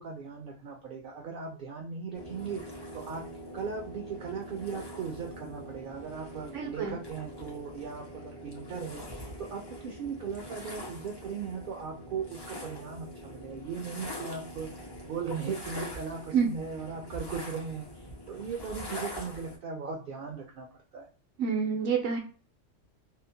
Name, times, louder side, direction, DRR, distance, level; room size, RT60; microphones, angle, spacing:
voice 1, 0.0-2.7 2.9-3.3 3.5-14.7 15.0-20.7 20.9-21.1, right 6 dB, 60° right, 1 dB, 0.6 m, -38 dB
sound 1, 2.1-19.6, equal, 40° left, 0.3 m, -43 dB
voice 2, 6.5-6.9 16.3-16.5 21.4-22.2, right 6 dB, 85° right, 2 dB, 1.0 m, -27 dB
2.8 x 2.0 x 2.6 m, 0.38 s
omnidirectional pair, 1.3 m